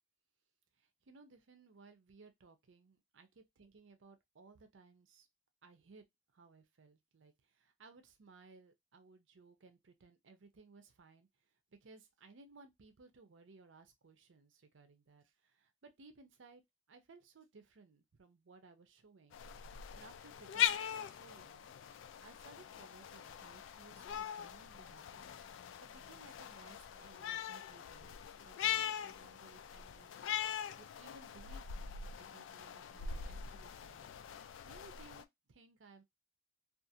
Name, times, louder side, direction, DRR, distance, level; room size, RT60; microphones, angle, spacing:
voice 1, 0.8-5.3 5.6-6.1 6.3-16.6 16.9-19.4 19.9-30.2 30.8-34.1 34.6-36.0, right 3 dB, 90° right, 0.6 m, -61 dB
sound 1, 19.3-35.2, left 9 dB, 90° left, 0.3 m, -41 dB
2.5 x 2.4 x 2.7 m
head